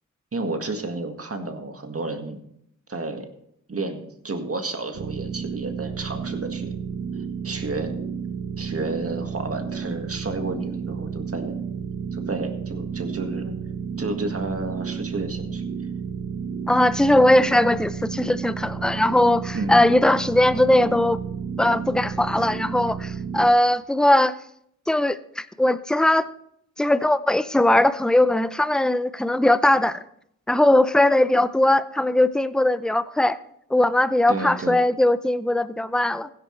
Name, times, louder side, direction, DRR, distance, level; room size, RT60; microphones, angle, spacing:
voice 1, 0.3-2.4 2.9-3.3 3.7-6.8 7.4-7.9 8.6-11.7 12.1-13.5 14.0-15.6 19.5-19.8 34.3-34.8, right 2 dB, 45° right, 5 dB, 1.8 m, -31 dB
sound 1, 4.9-23.5, right 6 dB, 90° right, 1.3 m, -32 dB
voice 2, 16.7-21.2 21.6-24.4 24.9-26.3 26.8-30.0 30.5-33.4 33.7-36.3, left 1 dB, ahead, 14 dB, 0.5 m, -19 dB
16.0 x 10.5 x 3.3 m, 0.72 s
cardioid pair, 75°, 32 cm